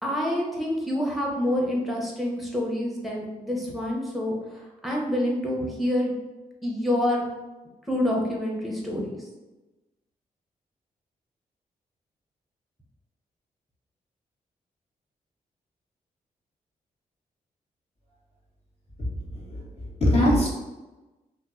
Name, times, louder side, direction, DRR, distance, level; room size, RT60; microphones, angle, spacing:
voice 1, 0.0-6.1 6.6-7.2 7.9-9.1, left 1 dB, ahead, -3 dB, 0.9 m, -27 dB
voice 2, 19.0-20.5, left 1 dB, 35° left, -5 dB, 1.0 m, -23 dB
2.6 x 2.0 x 2.4 m, 1.1 s
supercardioid pair, 40°, 17 cm